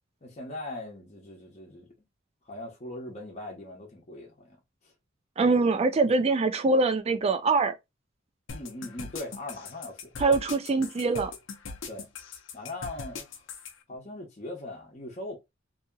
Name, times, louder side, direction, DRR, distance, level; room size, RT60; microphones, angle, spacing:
voice 1, 0.2-1.9 2.5-4.6 4.8-4.9 8.5-10.2 11.9-12.1 12.5-13.4 13.9-15.4, left 2 dB, 35° left, 0.9 m, -40 dB
voice 2, 5.4-7.7 10.2-11.3, right 3 dB, 30° right, 0.4 m, -23 dB
sound 1, 8.5-13.7, left 4 dB, 70° left, 0.6 m, -40 dB
2.7 x 2.7 x 2.3 m
head